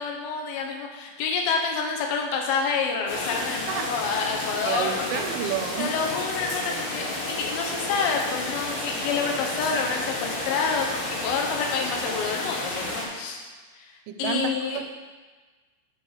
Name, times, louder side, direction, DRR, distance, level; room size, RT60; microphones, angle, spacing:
voice 1, 0.0-5.2 5.8-13.9 14.2-14.8, left 5 dB, 80° left, 1 dB, 3.4 m, -28 dB
sound 1, 3.1-13.0, left 2 dB, 60° left, 3.2 m, -31 dB
voice 2, 4.7-6.0 14.1-14.9, right 9 dB, 80° right, 6 dB, 3.0 m, -30 dB
13.0 x 4.5 x 4.9 m, 1.4 s
omnidirectional pair, 5.7 m